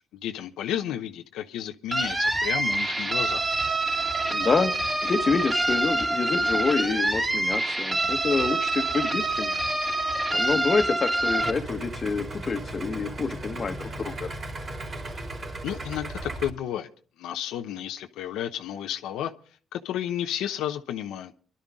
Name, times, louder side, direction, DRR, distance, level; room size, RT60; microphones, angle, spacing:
voice 1, 0.2-3.5 15.6-16.9 17.2-19.3 19.7-21.3, left 11 dB, 90° left, 0.9 m, -32 dB
sound 1, 1.9-11.5, right 2 dB, 20° right, 3.3 m, -26 dB
voice 2, 4.3-4.8 5.0-9.6 10.3-14.3, left 4 dB, 40° left, 1.4 m, -27 dB
Idling, 11.4-16.5, right 2 dB, 40° right, 3.5 m, -36 dB
22.5 x 12.0 x 3.7 m
cardioid pair, 90°, 0 cm